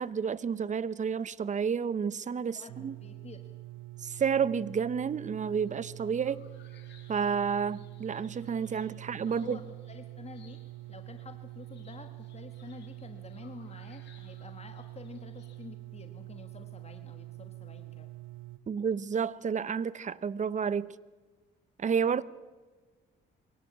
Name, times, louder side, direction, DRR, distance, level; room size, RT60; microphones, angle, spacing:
voice 1, 0.0-3.0 4.0-6.4 7.1-9.6 18.7-20.9 21.8-22.2, right 6 dB, 40° right, 0.8 m, -30 dB
voice 2, 2.4-3.4 9.0-10.6 10.9-18.1, left 4 dB, 30° left, 1.5 m, -49 dB
sound 1, 2.7-18.6, right 18 dB, 85° right, 0.8 m, -46 dB
sound 2, 5.6-15.7, left 6 dB, 65° left, 3.9 m, -63 dB
23.5 x 18.0 x 8.5 m
cardioid pair, 90°, 20 cm